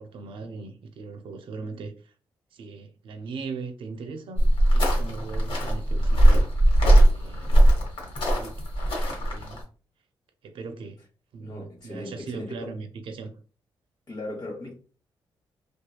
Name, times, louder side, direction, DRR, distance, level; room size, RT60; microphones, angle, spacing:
voice 1, 0.0-2.1 2.5-4.4 4.7-6.5 7.0-7.7 8.3-8.6 9.0-9.6 10.4-11.0 11.3-13.3, right 4 dB, 75° right, 0.5 m, -39 dB
sound 1, 4.4-9.6, right 1 dB, 80° left, 1.1 m, -19 dB
voice 2, 11.4-12.7 14.1-14.8, left 2 dB, 50° left, 1.0 m, -38 dB
2.7 x 2.3 x 2.3 m
cardioid pair, 90°, 9 cm